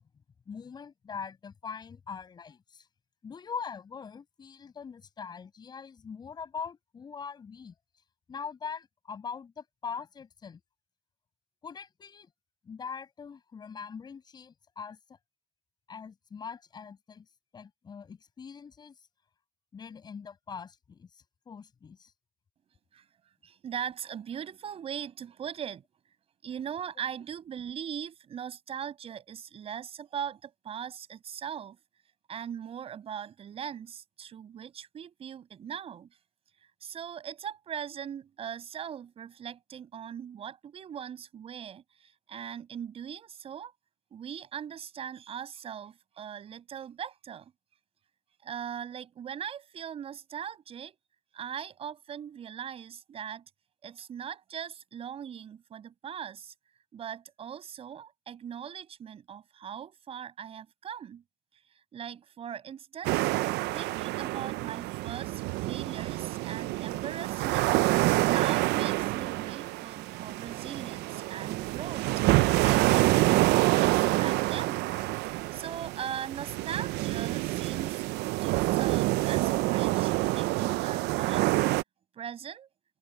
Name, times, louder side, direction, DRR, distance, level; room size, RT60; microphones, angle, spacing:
voice 1, 0.5-2.9 3.2-7.7 8.3-10.6 11.6-12.3 12.6-15.0 15.9-17.3 17.5-18.9 19.7-21.1 21.5-22.1, left 6 dB, 25° left, 6.5 m, -42 dB
voice 2, 23.4-25.8 26.4-31.8 32.3-36.1 36.8-43.7 44.1-47.5 48.4-51.0 51.3-53.4 53.8-56.5 56.9-61.2 61.7-63.3 63.7-67.7 68.2-72.1 72.6-75.0 75.5-78.0 78.4-81.7 82.1-82.7, right 8 dB, 35° right, 5.8 m, -40 dB
sound 1, 63.0-81.8, right 20 dB, 80° right, 0.4 m, -27 dB
cardioid pair, 175°, 17 cm